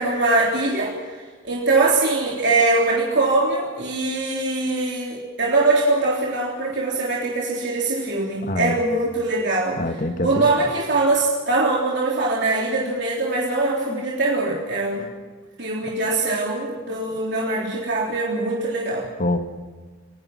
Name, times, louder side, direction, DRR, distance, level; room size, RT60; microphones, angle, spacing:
voice 1, 0.0-9.8 10.2-15.1 15.6-19.1, right 2 dB, 60° right, -3 dB, 3.6 m, -22 dB
voice 2, 8.4-8.8 9.8-10.4 13.9-14.0 19.2-19.4, left 1 dB, 45° left, 6 dB, 2.1 m, -25 dB
29.5 x 18.0 x 6.1 m, 1.4 s
head